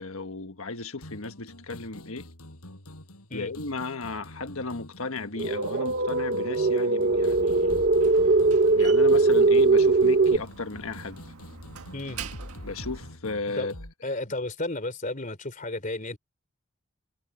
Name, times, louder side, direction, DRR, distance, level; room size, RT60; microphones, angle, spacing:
voice 1, 0.0-2.3 3.3-7.8 8.7-11.2 12.6-13.7, left 3 dB, 70° left, 1.5 m, -35 dB
sound 1, 1.0-13.9, left 1 dB, 90° left, 6.8 m, -46 dB
sound 2, 5.4-10.4, right 3 dB, 45° right, 0.8 m, -21 dB
Slam, 7.0-13.2, right 4 dB, 85° right, 1.7 m, -43 dB
voice 2, 11.9-12.3 13.6-13.7 14.0-16.2, left 2 dB, 35° left, 3.5 m, -33 dB
head